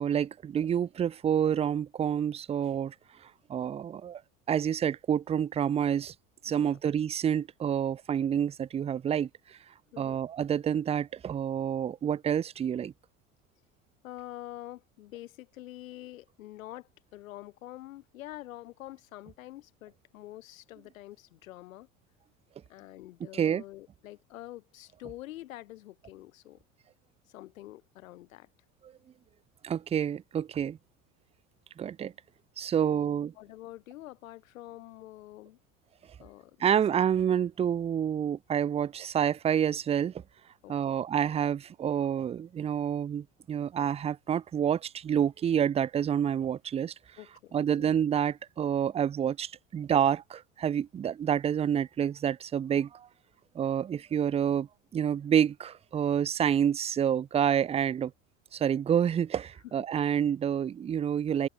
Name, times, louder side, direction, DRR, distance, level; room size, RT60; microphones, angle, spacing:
voice 1, 0.0-2.9 3.5-4.2 4.5-6.1 6.4-9.6 10.0-12.9 23.3-23.6 29.6-30.8 31.8-32.1 32.6-33.3 36.6-40.1 40.7-46.9 47.5-53.1 53.5-54.7 54.9-58.1 58.5-61.5, right 9 dB, 15° right, 0.4 m, -28 dB
voice 2, 6.5-6.8 9.9-10.2 14.0-21.9 22.7-26.6 27.3-28.5 32.6-35.6 36.2-36.8 40.6-41.1 47.2-48.0, left 15 dB, 80° left, 3.6 m, -46 dB
hypercardioid pair, 80°, 40 cm